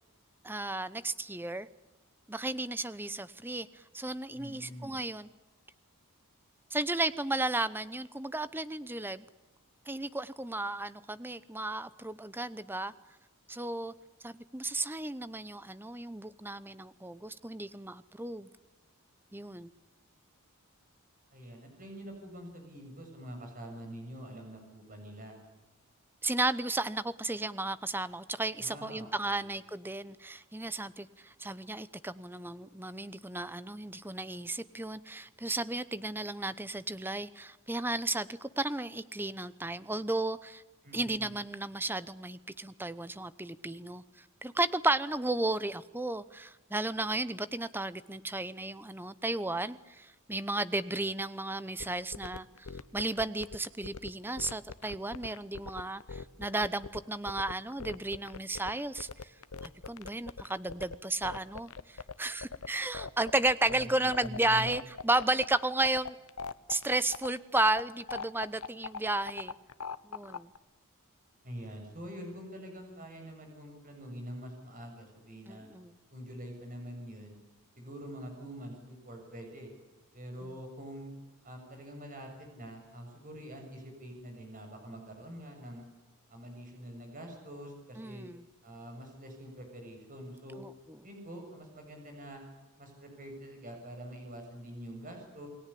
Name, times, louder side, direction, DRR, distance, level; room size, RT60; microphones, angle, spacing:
voice 1, 0.4-1.7 2.3-5.3 6.7-9.3 9.9-12.9 13.5-13.9 14.2-18.5 19.3-19.7 26.2-40.6 40.9-59.3 59.6-66.2 66.7-69.6 70.0-70.5 75.5-75.9 88.0-88.4 90.6-91.0, right 2 dB, 10° right, 15 dB, 0.8 m, -34 dB
voice 2, 4.3-5.0 21.3-25.4 28.6-29.5 40.8-41.4 63.7-63.9 64.2-64.8 71.4-75.7 76.1-77.4 77.8-79.7 80.1-81.1 81.4-85.8 86.3-88.3 88.6-90.6 91.0-92.4 92.8-95.5, equal, 40° right, 3 dB, 7.0 m, -45 dB
sound 1, 51.8-70.6, left 4 dB, 75° left, 1.0 m, -41 dB
28.5 x 20.0 x 8.5 m, 1.1 s
head